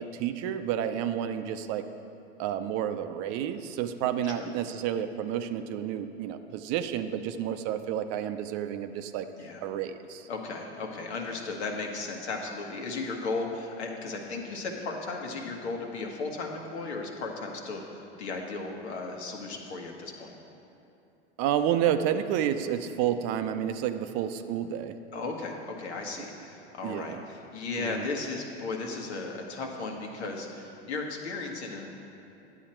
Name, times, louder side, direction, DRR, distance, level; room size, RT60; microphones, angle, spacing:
voice 1, 0.0-1.8 2.4-9.3 9.6-10.3 21.4-25.0 26.8-27.2 27.8-28.1, right 10 dB, 50° right, 10 dB, 0.6 m, -30 dB
voice 2, 10.3-20.4 25.1-31.9, left 3 dB, 80° left, 1 dB, 1.5 m, -35 dB
10.5 x 8.1 x 4.4 m, 2.8 s
hypercardioid pair, 100°, 33 cm